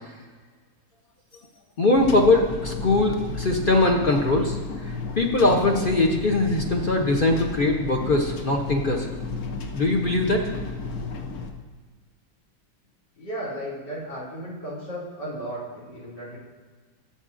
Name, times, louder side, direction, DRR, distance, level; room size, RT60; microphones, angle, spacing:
voice 1, 1.8-4.6 4.8-9.1 9.7-10.4, left 2 dB, 45° left, 1 dB, 0.7 m, -21 dB
sound 1, 1.9-11.5, left 3 dB, 65° left, 1.2 m, -33 dB
voice 2, 13.2-16.4, right 1 dB, 85° left, -7 dB, 3.4 m, -35 dB
14.5 x 7.8 x 2.6 m, 1.5 s
omnidirectional pair, 1.8 m